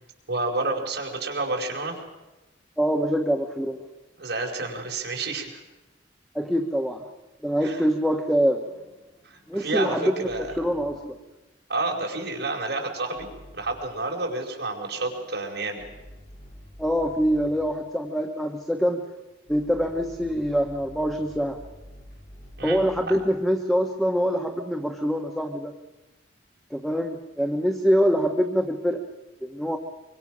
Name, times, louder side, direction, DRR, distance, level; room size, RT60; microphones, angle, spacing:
voice 1, 0.3-2.0 4.2-5.6 7.6-7.9 9.2-10.4 11.7-13.3 13.5-15.8 22.6-22.8 23.1-23.2, right 2 dB, 65° right, 0 dB, 4.7 m, -29 dB
voice 2, 2.8-3.8 6.3-7.0 7.4-8.6 9.5-10.3 10.6-11.2 16.8-19.0 19.5-21.6 22.6-25.7 26.7-29.0 29.4-29.8, equal, ahead, 3 dB, 1.2 m, -24 dB
sound 1, 8.4-11.1 13.1-14.0 14.8-17.8 19.5-23.3, equal, 45° left, 6.4 m, -48 dB
25.0 x 24.5 x 6.1 m, 1.1 s
head